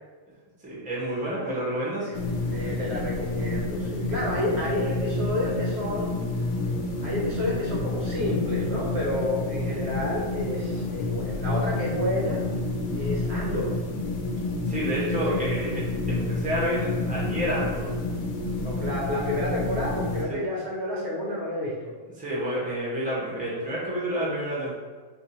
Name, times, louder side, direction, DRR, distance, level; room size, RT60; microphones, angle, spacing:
voice 1, 0.6-2.1 14.7-17.9 20.3-20.4 22.2-24.7, right 1 dB, 5° right, -7 dB, 0.7 m, -29 dB
sound 1, 2.1-20.2, left 2 dB, 75° left, 1.0 m, -29 dB
voice 2, 2.5-6.2 7.0-12.4 13.0-13.8 15.1-15.4 18.6-22.0, left 1 dB, 55° right, -4 dB, 0.8 m, -30 dB
2.6 x 2.6 x 4.2 m, 1.4 s
omnidirectional pair, 1.5 m